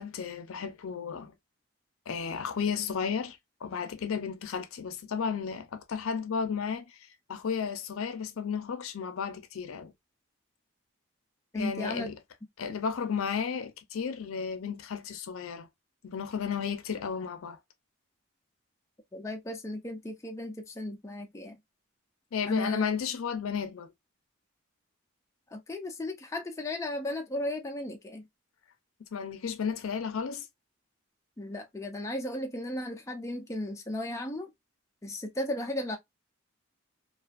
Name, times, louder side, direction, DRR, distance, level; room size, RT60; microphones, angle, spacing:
voice 1, 0.0-1.3 2.1-6.9 7.3-9.9 11.5-12.2 12.6-15.7 16.0-17.6 22.3-23.9 29.1-30.5, left 6 dB, 75° left, 0.5 m, -33 dB
voice 2, 11.5-12.1 19.1-21.5 22.5-22.9 25.5-28.2 31.4-34.5 35.0-36.0, left 1 dB, 15° left, 0.3 m, -35 dB
2.4 x 2.3 x 2.3 m
head